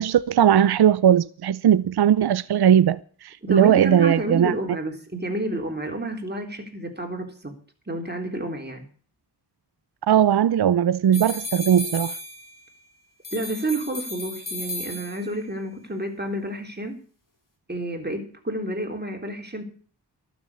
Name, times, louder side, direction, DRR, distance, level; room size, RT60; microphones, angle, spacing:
voice 1, 0.0-4.5 10.1-12.2, right 9 dB, 65° right, 0.6 m, -19 dB
voice 2, 3.4-7.5 7.9-8.8 13.3-17.0 17.7-19.6, right 1 dB, 25° right, 3.6 m, -30 dB
sound 1, 11.1-12.8 13.2-15.5, left 2 dB, 50° left, 4.1 m, -35 dB
12.5 x 7.2 x 9.9 m
cardioid pair, 50°, 42 cm